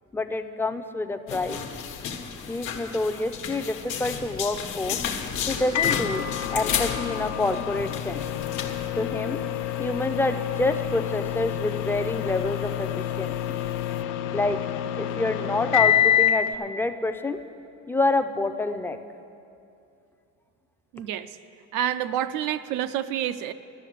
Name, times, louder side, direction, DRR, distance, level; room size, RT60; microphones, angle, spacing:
voice 1, 0.1-1.6 2.5-5.0 5.5-8.3 9.0-9.4 9.8-13.4 14.3-14.6 15.0-17.4 17.9-19.0, left 2 dB, 5° left, 8 dB, 0.4 m, -27 dB
sound 1, 1.3-8.9, left 7 dB, 70° left, 1.2 m, -32 dB
Microwave oven, 5.8-16.5, left 10 dB, 85° left, 0.6 m, -27 dB
sound 2, 7.7-14.0, left 11 dB, 45° left, 0.6 m, -39 dB
voice 2, 20.9-21.4 21.7-23.5, right 10 dB, 85° right, 11 dB, 0.6 m, -28 dB
12.5 x 6.6 x 9.2 m, 2.6 s
cardioid pair, 125°, 30 cm